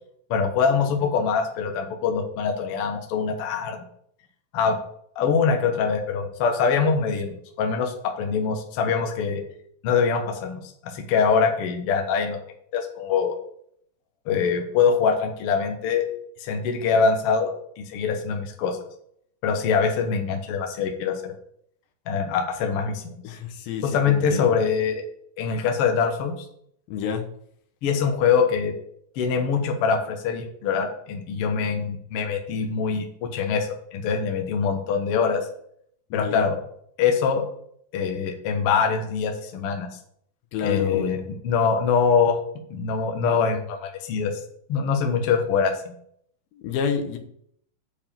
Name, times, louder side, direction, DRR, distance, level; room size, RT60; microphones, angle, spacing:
voice 1, 0.3-3.8 4.5-4.8 5.1-9.4 9.8-12.4 12.7-13.4 14.2-16.1 16.4-18.8 19.4-21.3 22.1-23.2 23.8-25.0 25.4-26.4 27.8-28.7 29.1-35.5 36.1-36.6 37.0-37.4 37.9-39.9 40.6-42.4 42.7-44.4 44.7-45.9, left 6 dB, 60° left, 4 dB, 1.6 m, -23 dB
voice 2, 23.2-24.5 26.9-27.2 36.1-36.4 40.5-41.1 46.6-47.2, left 6 dB, 85° left, 5 dB, 2.9 m, -29 dB
7.5 x 4.8 x 7.2 m, 0.68 s
omnidirectional pair, 4.0 m